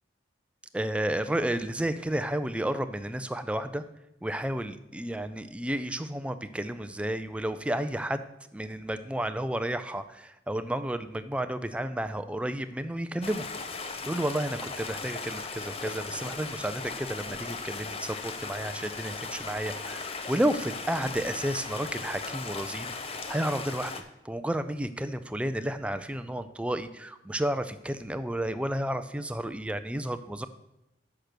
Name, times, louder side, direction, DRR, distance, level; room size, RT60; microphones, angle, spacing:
voice 1, 0.7-3.8 4.2-8.2 8.5-13.4 13.8-30.5, right 1 dB, 5° right, 11 dB, 0.3 m, -32 dB
Stream, 13.2-24.0, left 4 dB, 35° left, 0.6 m, -37 dB
6.5 x 5.9 x 6.7 m, 0.88 s
head